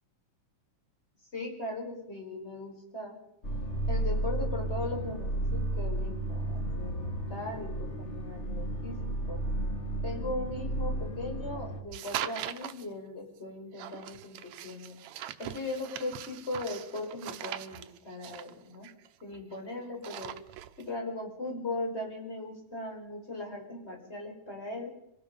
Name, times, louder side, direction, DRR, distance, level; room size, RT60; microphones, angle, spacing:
voice 1, 1.3-3.2 3.9-9.4 10.0-15.0 15.4-18.9 19.2-20.3 20.8-24.9, left 2 dB, 15° left, 1 dB, 5.1 m, -38 dB
sound 1, 3.4-11.8, right 1 dB, 50° left, 0.8 m, -33 dB
sound 2, 11.9-12.9 13.8-19.6 19.9-20.8, right 12 dB, 70° right, 1.7 m, -41 dB
25.5 x 18.5 x 5.4 m, 0.81 s
omnidirectional pair, 4.0 m